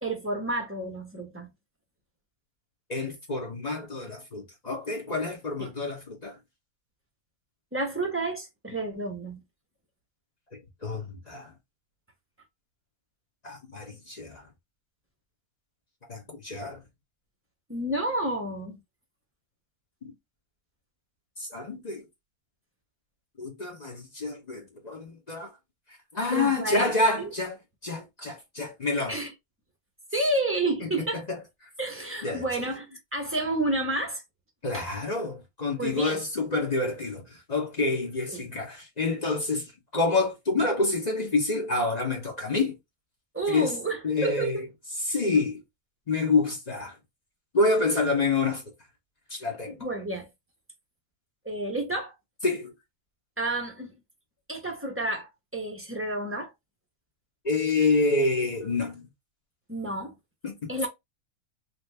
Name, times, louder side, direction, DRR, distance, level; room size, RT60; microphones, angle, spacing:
voice 1, 0.0-1.5 5.6-5.7 7.7-9.4 17.7-18.8 26.3-26.9 27.1-27.3 29.1-29.3 30.1-31.2 31.8-34.2 34.7-34.8 35.8-36.2 38.3-38.4 43.3-44.6 45.3-45.4 49.8-50.3 51.4-52.1 53.4-53.9 54.5-56.5 59.7-60.1 60.7-60.9, right 2 dB, 15° right, 0.4 m, -30 dB
voice 2, 2.9-6.4 10.5-11.5 13.4-14.5 16.1-16.8 20.0-20.1 21.4-22.0 23.4-25.5 26.1-27.6 27.8-29.2 30.8-31.4 32.2-32.5 34.6-39.7 39.9-42.8 43.5-43.7 44.0-44.6 45.0-45.6 46.1-47.0 47.5-48.6 49.3-49.9 52.4-52.7 57.4-59.1 60.4-60.7, left 3 dB, 35° left, 0.7 m, -28 dB
2.9 x 2.5 x 3.2 m
omnidirectional pair, 1.6 m